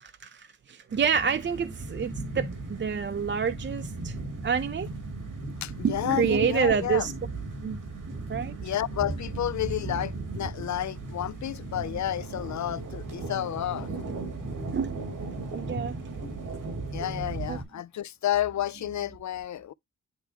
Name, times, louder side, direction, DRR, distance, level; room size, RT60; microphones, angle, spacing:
voice 1, 0.0-4.1 4.4-4.9 5.8-7.2 7.6-7.8 8.3-8.5 14.7-14.9 15.5-16.0 17.5-17.6, right 7 dB, 40° right, 0.5 m, -28 dB
sound 1, 0.9-17.6, right 3 dB, 85° right, 2.4 m, -36 dB
voice 2, 5.6-7.1 8.6-13.9 16.9-19.7, left 12 dB, 65° left, 0.5 m, -31 dB
10.0 x 3.4 x 2.8 m
wide cardioid pair, 100°, 31 cm